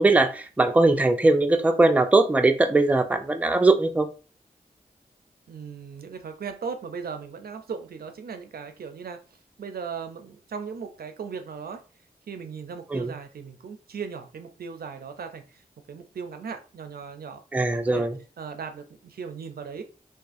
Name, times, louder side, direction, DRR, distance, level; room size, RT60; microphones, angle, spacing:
voice 1, 0.0-4.1 12.9-13.1 17.5-18.2, right 2 dB, 10° right, 6 dB, 0.3 m, -20 dB
voice 2, 5.5-9.2 9.6-11.8 12.3-18.1 18.4-19.8, right 6 dB, 75° right, 7 dB, 0.4 m, -37 dB
2.4 x 2.4 x 2.4 m, 0.36 s
cardioid pair, 40°, 16 cm